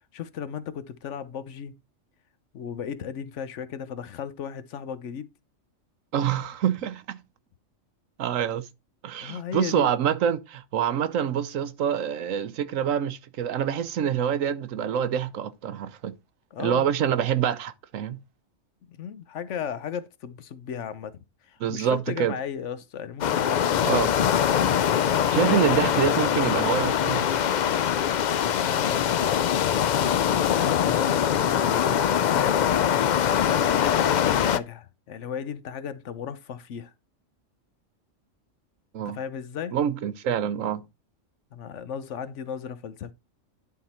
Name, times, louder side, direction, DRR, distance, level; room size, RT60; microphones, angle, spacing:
voice 1, 0.1-1.7 2.5-5.3 9.2-9.9 16.5-16.9 18.9-21.2 21.4-24.0 25.5-25.6 28.5-29.3 30.4-32.6 33.6-36.9 39.0-39.8 41.5-43.1, left 7 dB, 70° left, 1.0 m, -35 dB
voice 2, 6.1-7.2 8.2-8.7 9.0-16.1 16.6-18.2 21.6-22.3 23.8-24.1 25.3-27.3 38.9-39.2 39.7-40.8, right 9 dB, 80° right, 1.1 m, -26 dB
sound 1, 23.2-34.6, left 9 dB, 85° left, 0.4 m, -23 dB
10.5 x 3.8 x 4.3 m
omnidirectional pair, 1.3 m